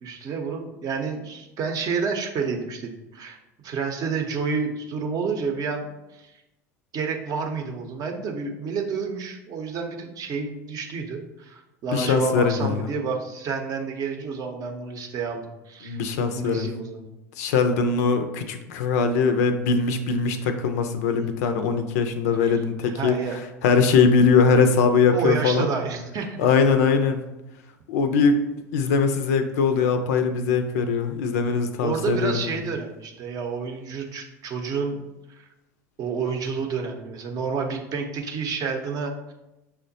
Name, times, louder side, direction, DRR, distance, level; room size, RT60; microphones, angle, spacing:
voice 1, 0.0-3.4 3.6-6.3 6.9-17.0 21.1-21.3 22.4-23.4 25.1-26.5 31.8-35.0 35.4-35.5 36.0-39.3, right 5 dB, 45° right, 3 dB, 0.6 m, -29 dB
voice 2, 11.9-12.8 15.8-16.7 17.4-23.2 23.6-25.7 26.4-27.2 27.9-28.4 28.7-32.6, left 5 dB, 70° left, 8 dB, 0.4 m, -21 dB
5.9 x 2.1 x 2.6 m, 0.96 s
hypercardioid pair, 75°, 9 cm